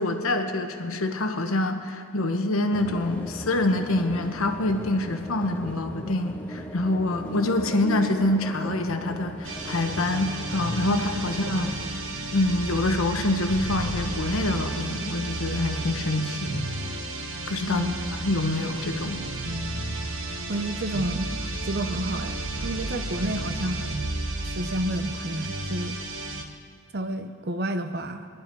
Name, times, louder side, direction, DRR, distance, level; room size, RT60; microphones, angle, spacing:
voice 1, 0.0-11.8 12.3-16.6 17.5-17.9 18.2-19.2, left 2 dB, 80° left, 6 dB, 1.1 m, -26 dB
sound 1, 2.7-11.9, equal, 5° left, 0.8 m, -38 dB
sound 2, 9.4-26.4, right 2 dB, 70° right, 1.2 m, -32 dB
voice 2, 20.5-21.3 21.6-23.9 24.4-26.0 26.9-28.3, right 1 dB, 50° right, 8 dB, 0.7 m, -30 dB
21.5 x 11.0 x 4.6 m, 2.3 s
head